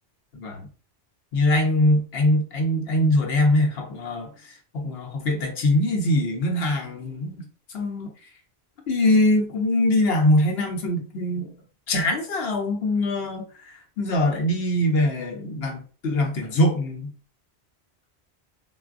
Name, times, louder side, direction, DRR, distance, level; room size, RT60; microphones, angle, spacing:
voice 1, 0.3-0.7 1.3-4.3 4.7-7.4 7.7-8.1 8.9-11.5 11.9-13.5 14.0-17.1, left 1 dB, 70° left, 1.0 m, -22 dB
3.9 x 2.1 x 2.4 m
omnidirectional pair, 1.1 m